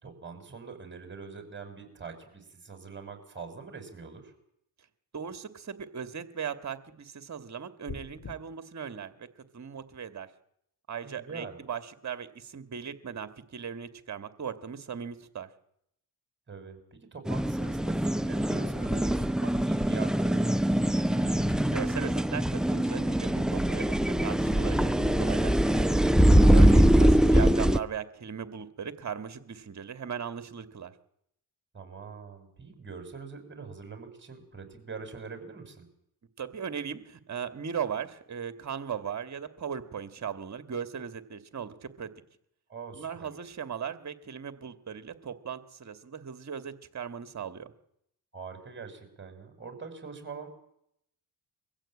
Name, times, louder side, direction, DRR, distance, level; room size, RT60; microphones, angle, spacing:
voice 1, 0.0-4.3 11.0-11.6 16.5-20.6 26.0-26.8 31.7-35.9 42.7-43.3 48.3-50.5, right 5 dB, 30° right, 7 dB, 5.9 m, -43 dB
voice 2, 5.1-9.3 9.5-10.3 10.9-15.5 21.0-25.9 26.5-30.9 36.4-42.1 42.9-47.7, right 7 dB, 45° right, 11 dB, 2.1 m, -38 dB
sound 1, 7.9-8.3, left 4 dB, 45° left, 3.0 m, -41 dB
sound 2, 17.3-27.8, equal, ahead, 0.8 m, -23 dB
23.0 x 15.5 x 8.7 m, 0.75 s
cardioid pair, 75°, 38 cm